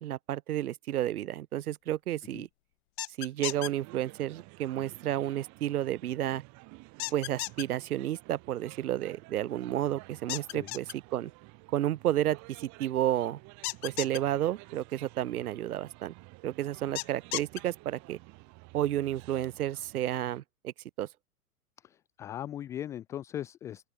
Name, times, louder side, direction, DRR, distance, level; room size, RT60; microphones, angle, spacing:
voice 1, 0.0-2.5 3.2-6.4 7.1-10.9 11.1-11.3 11.7-13.4 13.8-16.1 16.4-18.2 18.7-21.1, right 12 dB, 80° right, 0.7 m, -31 dB
sound 1, 3.0-3.7 7.0-7.6 10.3-10.9 13.6-14.2 17.0-17.6, left 22 dB, 45° left, 0.8 m, -34 dB
sound 2, 3.4-20.4, right 26 dB, 40° right, 2.4 m, -52 dB
voice 2, 21.8-23.9, left 11 dB, 10° left, 0.3 m, -39 dB
open air
hypercardioid pair, 110°, 45 cm